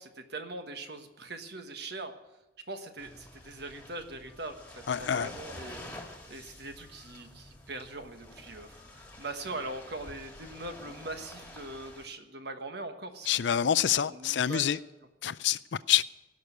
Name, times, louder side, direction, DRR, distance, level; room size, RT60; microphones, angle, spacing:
voice 1, 0.0-2.1 2.7-5.8 6.3-13.3 14.1-14.8, right 2 dB, 60° right, 1.4 m, -41 dB
sound 1, 3.0-12.1, left 1 dB, 10° left, 1.9 m, -48 dB
voice 2, 4.9-5.3 13.3-14.8 15.2-16.0, left 10 dB, 70° left, 0.4 m, -27 dB
17.0 x 6.4 x 9.2 m
head